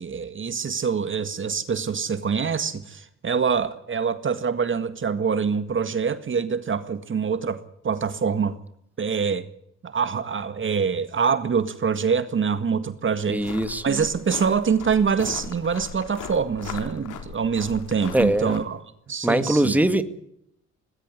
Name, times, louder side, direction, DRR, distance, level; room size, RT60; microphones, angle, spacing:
voice 1, 0.0-8.6 9.0-9.5 9.8-13.5 13.8-18.8 19.1-19.8, right 6 dB, 40° right, 12 dB, 1.8 m, -25 dB
voice 2, 13.3-13.9 18.1-18.6 19.2-20.0, right 1 dB, 5° right, 11 dB, 1.9 m, -21 dB
sound 1, 13.4-18.6, left 7 dB, 85° left, 3.9 m, -38 dB
20.0 x 17.5 x 9.7 m, 0.72 s
cardioid pair, 90°, 30 cm